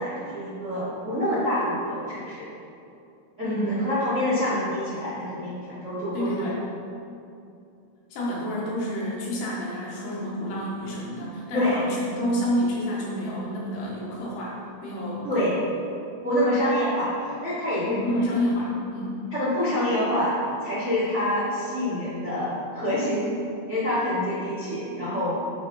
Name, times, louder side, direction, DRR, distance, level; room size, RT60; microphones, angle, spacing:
voice 1, 0.0-2.4 3.4-6.4 11.5-11.8 15.2-15.6 16.2-18.0 19.3-23.3 23.7-25.3, left 1 dB, 45° right, -11 dB, 0.9 m, -26 dB
voice 2, 6.1-6.6 8.1-15.5 17.8-19.2, equal, 75° left, -5 dB, 3.8 m, -29 dB
11.5 x 4.2 x 5.5 m, 2.6 s
omnidirectional pair, 5.0 m